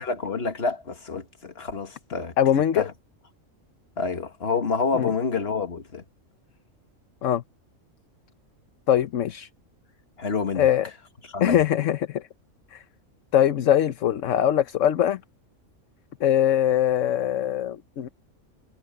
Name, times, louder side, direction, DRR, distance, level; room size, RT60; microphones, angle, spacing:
voice 1, 0.0-2.3 2.7-2.9 4.0-6.0 10.2-10.7 11.3-11.6, left 4 dB, 50° left, 1.9 m, -28 dB
voice 2, 2.4-2.9 4.9-5.1 7.2-7.4 8.9-9.5 10.6-10.9 11.4-12.3 12.7-12.8 13.3-15.2 16.2-18.1, left 10 dB, 65° left, 1.1 m, -22 dB
omnidirectional pair, 1.4 m